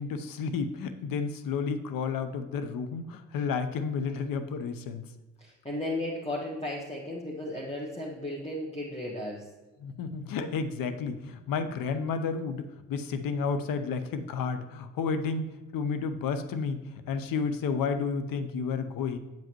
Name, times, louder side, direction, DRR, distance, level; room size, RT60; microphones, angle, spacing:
voice 1, 0.0-5.0 9.8-19.2, left 5 dB, 60° left, 10 dB, 0.8 m, -31 dB
voice 2, 5.4-9.5, left 1 dB, 15° left, -4 dB, 1.5 m, -35 dB
8.8 x 7.8 x 3.0 m, 1.1 s
hypercardioid pair, 45°, 38 cm